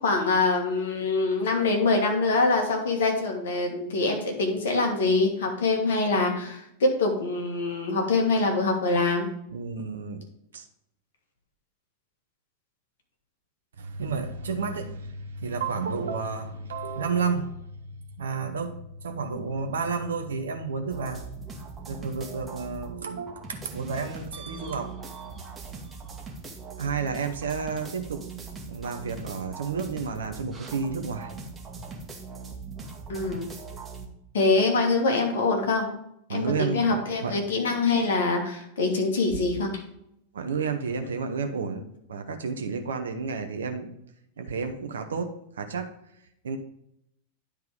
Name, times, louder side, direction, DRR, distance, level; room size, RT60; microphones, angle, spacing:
voice 1, 0.0-9.3 33.1-33.5 34.3-35.9 36.3-39.8, left 3 dB, 60° left, 2 dB, 1.6 m, -24 dB
voice 2, 9.5-10.2 10.5-10.6 13.8-17.6 18.2-21.2 21.8-24.9 26.8-28.2 28.7-31.3 36.3-37.3 40.3-41.8 42.1-43.9 44.4-45.9 46.4-46.6, right 5 dB, 65° right, 6 dB, 0.7 m, -31 dB
sound 1, 20.9-23.0 23.3-34.1, right 4 dB, 15° right, 1.2 m, -40 dB
9.9 x 3.4 x 4.9 m, 0.77 s
figure-of-eight pair, 90°, 0 cm